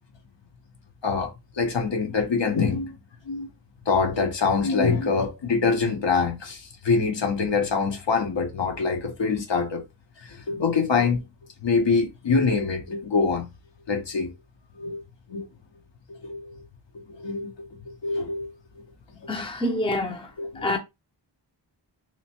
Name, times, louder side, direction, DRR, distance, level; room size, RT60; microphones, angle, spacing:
voice 1, 1.0-2.9 3.3-3.5 3.9-9.8 10.2-11.2 11.6-13.5 13.9-14.3 14.8-15.0 15.3-15.4 16.1-16.6 17.1-17.5 18.0-18.5 19.2-19.3 19.9-20.0 20.4-20.8, left 4 dB, 70° left, 0.9 m, -25 dB
voice 2, 19.3-20.3 20.6-20.8, left 1 dB, 10° left, 0.5 m, -26 dB
2.9 x 2.1 x 2.8 m
wide cardioid pair, 95°, 46 cm